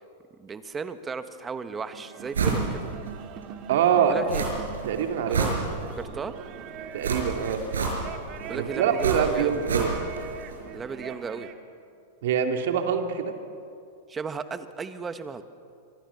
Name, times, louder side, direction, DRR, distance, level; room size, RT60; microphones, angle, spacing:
voice 1, 0.4-2.9 4.1-4.5 5.3-5.6 5.9-6.4 8.5-9.7 10.7-11.5 14.1-15.4, right 5 dB, 20° right, 11 dB, 1.5 m, -35 dB
sound 1, 1.8-11.6, right 8 dB, 40° right, 2.0 m, -41 dB
sound 2, 2.3-2.7 3.1-3.2 4.3-4.8 5.1-6.1 7.0-8.3 9.0-10.2 10.5-10.6, right 5 dB, 80° right, 5.1 m, -28 dB
voice 2, 3.7-4.1 4.8-5.4 6.9-7.6 8.5-9.9 12.2-13.3, right 8 dB, 65° right, 5 dB, 2.5 m, -24 dB
25.5 x 25.0 x 7.0 m, 2.5 s
hypercardioid pair, 100°, 0 cm